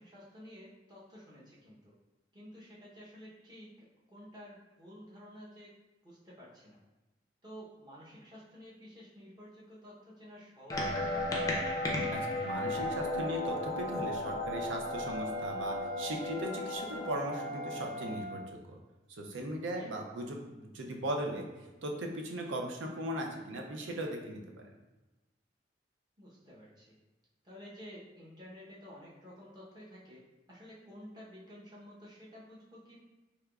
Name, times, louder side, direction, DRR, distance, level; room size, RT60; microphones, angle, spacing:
voice 1, 0.0-1.9 2.3-3.7 4.1-5.7 6.0-6.8 7.4-11.6 19.7-19.9 26.2-27.0 27.4-30.2 30.5-33.0, equal, 20° right, -7 dB, 0.8 m, -51 dB
sound 1, 10.7-18.2, left 1 dB, 20° left, 0.5 m, -35 dB
voice 2, 12.1-18.4 18.7-18.8 19.1-21.5 21.8-24.7, right 1 dB, 90° right, 2 dB, 0.5 m, -38 dB
Wind instrument woodwind instrument, 14.8-18.6, equal, 50° right, 1.3 m, -42 dB
3.4 x 2.9 x 2.3 m, 1.1 s
head